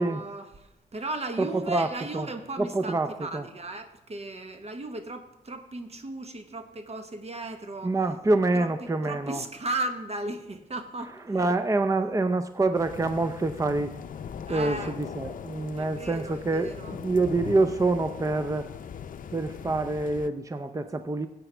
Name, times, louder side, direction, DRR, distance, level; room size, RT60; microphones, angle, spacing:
voice 1, 0.0-7.9 8.5-11.5 14.5-15.0 15.8-17.0, right 2 dB, 45° right, 7 dB, 1.2 m, -36 dB
voice 2, 1.4-1.9 2.1-2.3 2.6-3.4 7.8-9.4 11.3-13.9 14.5-18.7 19.3-21.3, right 2 dB, 20° right, 9 dB, 0.6 m, -26 dB
sound 1, 12.7-20.3, left 8 dB, 65° left, 0.5 m, -40 dB
15.5 x 8.2 x 3.4 m, 0.92 s
cardioid pair, 55°, 15 cm